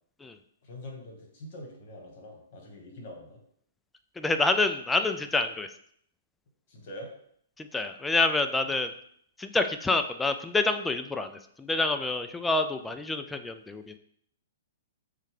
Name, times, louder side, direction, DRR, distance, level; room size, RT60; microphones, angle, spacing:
voice 1, 0.6-3.4 6.7-7.1 8.6-8.8 12.9-13.0, left 1 dB, 55° left, 1 dB, 1.5 m, -44 dB
voice 2, 4.2-5.7 7.6-8.9 9.4-11.3 11.6-14.0, left 3 dB, 10° left, 7 dB, 0.3 m, -27 dB
6.6 x 2.2 x 3.3 m, 0.66 s
hypercardioid pair, 135°, 0 cm